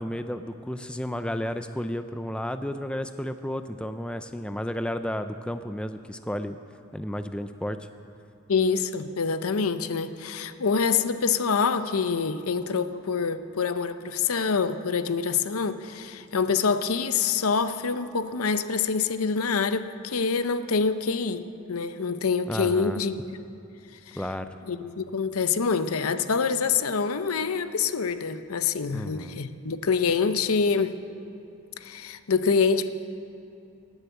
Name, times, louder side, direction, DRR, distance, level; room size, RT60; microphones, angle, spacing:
voice 1, 0.0-6.6 6.9-7.8 22.5-23.0 24.2-24.6 28.9-29.4, left 1 dB, 5° left, 9 dB, 0.4 m, -32 dB
voice 2, 8.5-23.1 24.1-24.2 24.7-31.0 31.8-32.9, left 5 dB, 80° left, 11 dB, 0.7 m, -26 dB
16.0 x 8.1 x 9.2 m, 2.7 s
head